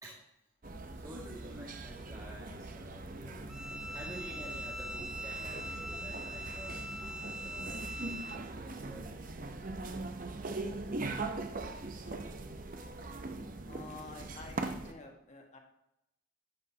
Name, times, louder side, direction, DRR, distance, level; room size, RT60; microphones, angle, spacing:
sound 1, 0.6-14.9, right 2 dB, 45° right, 0.7 m, -41 dB
voice 1, 0.9-3.6 3.9-9.2, equal, 20° right, -5 dB, 2.0 m, -50 dB
Bowed string instrument, 3.5-8.4, equal, 5° right, 0.4 m, -42 dB
voice 2, 13.6-15.6, left 3 dB, 35° left, 1 dB, 1.6 m, -49 dB
11.0 x 8.0 x 2.8 m, 0.88 s
head